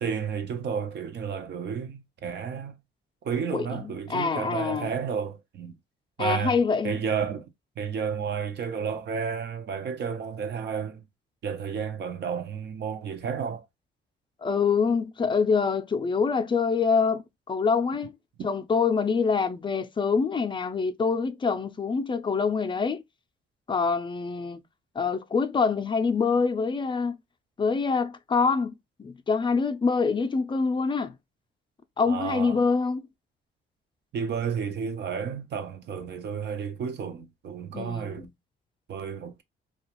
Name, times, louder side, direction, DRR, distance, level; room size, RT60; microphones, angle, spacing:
voice 1, 0.0-2.8 3.2-5.8 6.2-6.6 6.8-7.5 7.8-11.0 11.4-13.7 32.0-32.6 34.1-38.3 38.9-39.4, right 6 dB, 60° right, 0.6 m, -32 dB
voice 2, 3.5-4.9 6.2-7.0 14.4-18.1 18.4-23.0 23.7-24.6 25.0-27.2 27.6-31.1 32.0-33.0 37.7-38.3, left 5 dB, 25° left, 0.4 m, -25 dB
2.4 x 2.3 x 2.9 m
cardioid pair, 90°, 20 cm